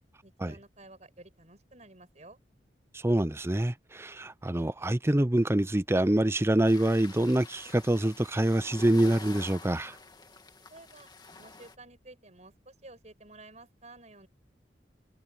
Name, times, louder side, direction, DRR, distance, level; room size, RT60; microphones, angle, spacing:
voice 1, 0.2-2.4 10.7-11.1 11.4-14.3, right 2 dB, 40° right, 7.6 m, -52 dB
voice 2, 2.9-10.0, right 1 dB, 15° right, 0.6 m, -26 dB
sound 1, 6.6-11.7, left 3 dB, 25° left, 2.5 m, -48 dB
head